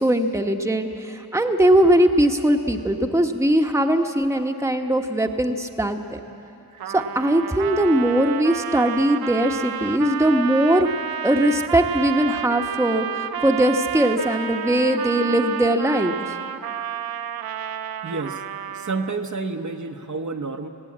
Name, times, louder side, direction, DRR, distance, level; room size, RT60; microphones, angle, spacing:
voice 1, 0.0-6.2 6.9-10.9 11.2-16.3, right 1 dB, 10° right, 4 dB, 1.1 m, -20 dB
Trumpet, 6.8-19.2, right 9 dB, 75° right, 0.6 m, -30 dB
voice 2, 18.0-18.4 18.7-20.7, right 3 dB, 50° right, 4 dB, 1.1 m, -30 dB
19.5 x 16.5 x 8.7 m, 2.8 s
wide cardioid pair, 70°, 36 cm